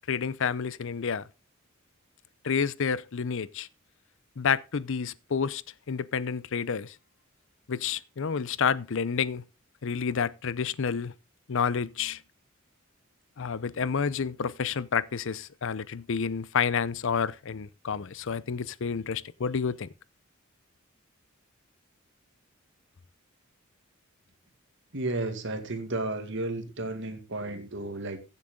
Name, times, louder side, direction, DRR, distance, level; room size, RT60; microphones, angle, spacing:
voice 1, 0.1-1.3 2.4-3.7 4.4-5.6 5.9-7.0 7.7-9.4 9.8-11.1 11.5-12.2 13.4-19.9, left 6 dB, 65° left, 0.6 m, -29 dB
voice 2, 24.9-28.2, right 2 dB, 60° right, 2.1 m, -33 dB
15.0 x 8.1 x 3.7 m
head